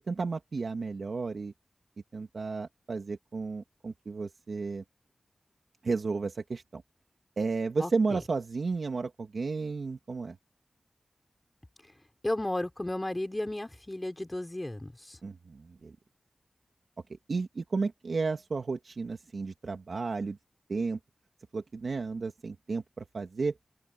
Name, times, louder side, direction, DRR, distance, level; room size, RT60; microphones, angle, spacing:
voice 1, 0.1-1.5 2.1-4.8 5.8-6.8 7.4-10.4 15.2-16.0 17.3-20.4 20.7-21.0 21.5-23.5, right 4 dB, 75° right, 2.4 m, -33 dB
voice 2, 7.8-8.2 12.2-15.2, left 1 dB, 20° left, 3.5 m, -34 dB
open air
wide cardioid pair, 90°, 0 cm